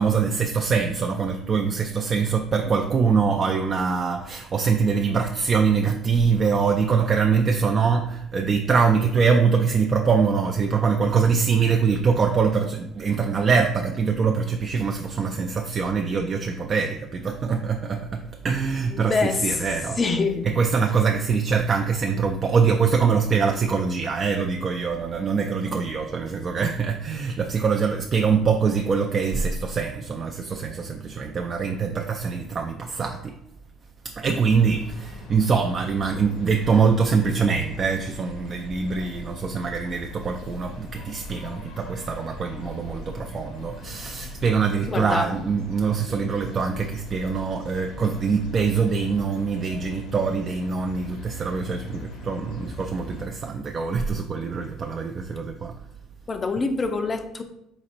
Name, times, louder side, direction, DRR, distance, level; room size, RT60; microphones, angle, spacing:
voice 1, 0.0-20.0 20.5-33.3 34.0-55.7, right 5 dB, 35° right, 3 dB, 0.3 m, -23 dB
voice 2, 18.9-19.6 20.0-20.5 44.9-45.3 56.3-57.4, left 4 dB, 25° left, 8 dB, 0.4 m, -25 dB
sound 1, 34.3-53.3, left 2 dB, 70° left, 0.9 m, -40 dB
4.0 x 4.0 x 2.5 m, 0.80 s
cardioid pair, 110°, 0 cm